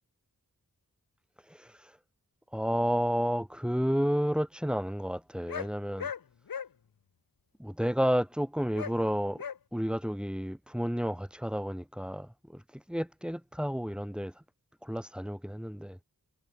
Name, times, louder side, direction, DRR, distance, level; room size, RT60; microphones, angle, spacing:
voice 1, 1.4-2.0 2.5-6.1 7.6-9.4 9.7-14.4 14.8-16.0, equal, ahead, 2.6 m, -31 dB
sound 1, 5.5-5.7 6.0-6.2 6.5-6.7 8.7-8.9 9.4-9.6, left 7 dB, 70° left, 0.8 m, -36 dB
wide cardioid pair, 50°, 36 cm